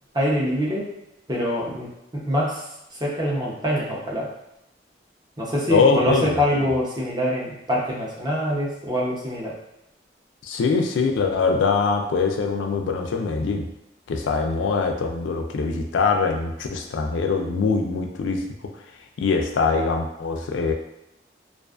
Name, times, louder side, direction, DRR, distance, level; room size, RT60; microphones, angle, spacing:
voice 1, 0.1-0.8 1.3-2.6 3.0-4.3 5.4-9.5, equal, 25° right, -5 dB, 0.6 m, -24 dB
voice 2, 5.7-6.6 10.4-13.7 14.1-18.4 19.2-20.7, left 4 dB, 90° left, 3 dB, 0.3 m, -23 dB
2.4 x 2.3 x 2.3 m, 0.86 s
head